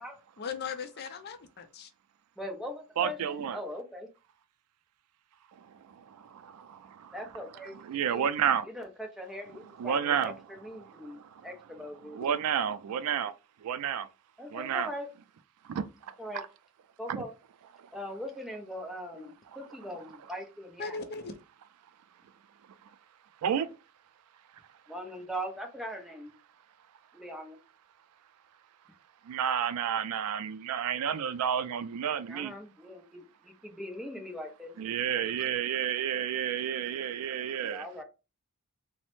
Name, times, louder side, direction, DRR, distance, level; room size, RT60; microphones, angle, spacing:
voice 1, 0.4-1.9 12.3-12.4 19.2-19.3 20.8-21.3, left 5 dB, 45° left, 0.4 m, -38 dB
voice 2, 2.4-4.1 7.1-8.3 8.6-12.2 14.4-15.1 16.2-16.4 17.0-17.3 17.9-21.0 24.9-26.3 27.1-27.6 32.3-34.7 37.6-38.0, equal, ahead, 0.6 m, -41 dB
voice 3, 3.0-3.6 7.8-8.6 9.8-10.3 12.1-13.3 13.6-14.1 14.5-14.9 15.7-15.8 16.3-16.4 17.1-17.2 23.4-23.7 29.3-32.5 34.8-37.8, right 8 dB, 75° right, 0.3 m, -30 dB
3.1 x 2.0 x 3.0 m
head